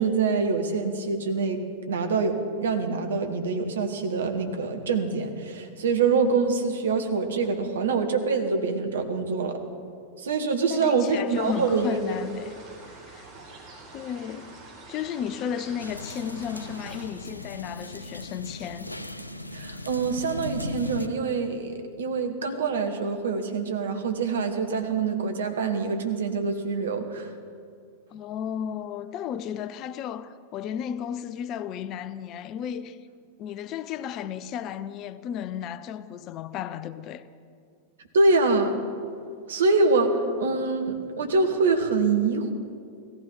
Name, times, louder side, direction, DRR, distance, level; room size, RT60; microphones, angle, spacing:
voice 1, 0.0-9.6 10.2-11.9 19.5-27.3 38.1-38.8 39.5-42.5, right 4 dB, 65° right, 1.7 m, -25 dB
voice 2, 10.7-12.5 13.1-13.3 13.9-14.6 14.9-18.9 28.1-33.0 33.4-37.2, left 9 dB, 35° left, 0.6 m, -33 dB
sound 1, 11.3-17.1, right 3 dB, 45° right, 4.5 m, -46 dB
sound 2, 15.8-21.1, left 2 dB, 85° left, 0.7 m, -37 dB
16.5 x 15.0 x 5.6 m
figure-of-eight pair, 90°, 0 cm